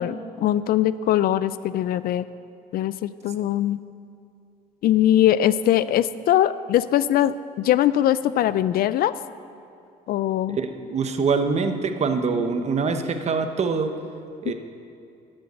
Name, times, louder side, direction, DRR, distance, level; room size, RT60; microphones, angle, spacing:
voice 1, 0.0-2.2 2.7-3.8 4.8-9.1 10.1-10.6, left 12 dB, 60° left, 16 dB, 0.4 m, -21 dB
voice 2, 10.5-13.9 14.4-14.5, right 5 dB, 40° right, 7 dB, 1.0 m, -24 dB
11.5 x 7.8 x 8.1 m, 2.5 s
cardioid pair, 110°, 17 cm